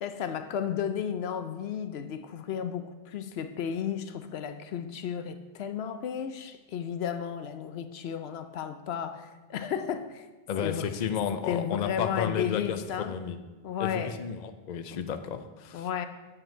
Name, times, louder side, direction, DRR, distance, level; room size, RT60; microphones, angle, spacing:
voice 1, 0.0-10.3 10.6-10.9 11.4-13.1 13.6-14.2 14.9-15.0 15.7-16.1, left 8 dB, 85° left, 9 dB, 0.9 m, -33 dB
voice 2, 10.5-13.4 13.8-15.9, left 7 dB, 50° left, 9 dB, 0.6 m, -32 dB
7.8 x 7.7 x 4.4 m, 1.3 s
omnidirectional pair, 1.0 m